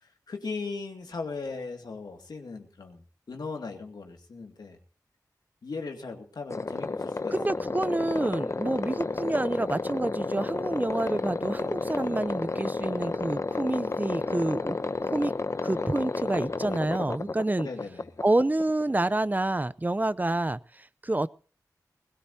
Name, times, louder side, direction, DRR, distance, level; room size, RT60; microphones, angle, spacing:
voice 1, 0.0-3.0 3.3-4.8 5.6-7.6 17.6-18.1, left 4 dB, 85° left, 4 dB, 2.2 m, -38 dB
sound 1, 6.5-19.1, left 3 dB, 45° left, 0.7 m, -31 dB
voice 2, 7.3-14.8 15.0-15.3 15.6-17.7 18.2-21.3, right 2 dB, 25° right, 16 dB, 0.6 m, -28 dB
20.0 x 17.0 x 2.8 m, 0.39 s
cardioid pair, 50°, 7 cm